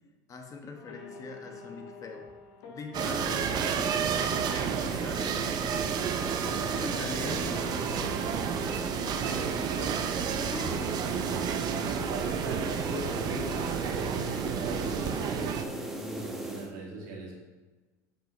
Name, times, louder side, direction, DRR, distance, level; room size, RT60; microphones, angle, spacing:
voice 1, 0.3-2.3 2.6-5.7 6.8-8.5 10.5-11.1, left 3 dB, 35° left, 3 dB, 1.2 m, -42 dB
sound 1, 0.7-15.9, left 3 dB, 70° left, 1.3 m, -49 dB
sound 2, 2.9-15.6, right 8 dB, 45° right, 0.6 m, -31 dB
sound 3, 3.0-16.7, right 1 dB, 5° right, 1.1 m, -38 dB
voice 2, 7.2-7.8 9.1-10.5 12.0-17.3, right 2 dB, 80° right, -2 dB, 2.1 m, -41 dB
8.7 x 5.3 x 3.1 m, 1.2 s
supercardioid pair, 100°, 10 cm